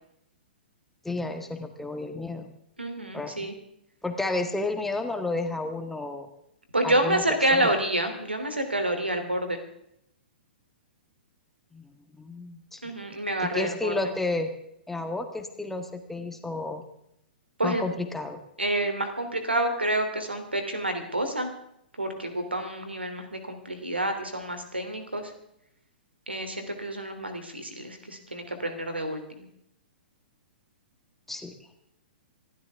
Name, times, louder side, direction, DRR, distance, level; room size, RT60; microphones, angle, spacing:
voice 1, 1.0-2.5 3.1-3.5 4.0-6.3 6.8-7.2 7.5-7.7 11.7-11.8 12.1-12.9 13.4-14.5 14.9-16.8 17.6-18.4 31.3-31.5, left 2 dB, 5° left, 5 dB, 1.6 m, -31 dB
voice 2, 2.8-3.5 6.7-9.6 12.8-14.1 17.6-17.9 18.6-21.5 22.0-25.3 26.3-29.5, right 1 dB, 85° right, 7 dB, 2.9 m, -28 dB
26.0 x 12.5 x 3.5 m, 0.76 s
figure-of-eight pair, 110°, 6 cm